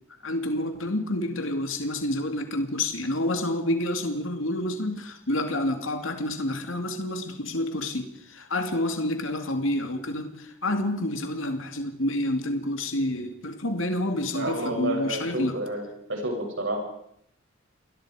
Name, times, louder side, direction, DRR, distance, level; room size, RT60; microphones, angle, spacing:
voice 1, 0.2-15.6, left 1 dB, 80° left, 6 dB, 2.5 m, -28 dB
voice 2, 14.3-16.8, right 1 dB, 70° right, 1 dB, 7.7 m, -30 dB
29.0 x 21.0 x 5.0 m, 0.71 s
head